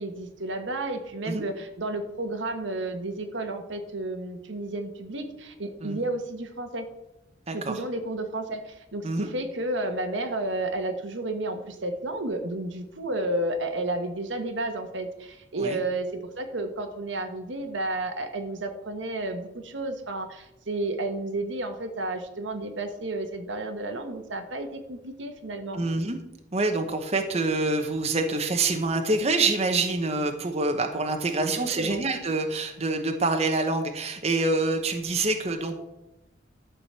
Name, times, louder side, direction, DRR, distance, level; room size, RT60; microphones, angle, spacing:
voice 1, 0.0-6.9 7.5-25.8 31.4-32.0, right 2 dB, 80° right, 5 dB, 1.4 m, -32 dB
voice 2, 25.7-26.2 26.5-35.7, right 3 dB, 35° right, 5 dB, 1.0 m, -26 dB
12.0 x 5.0 x 7.4 m, 0.91 s
head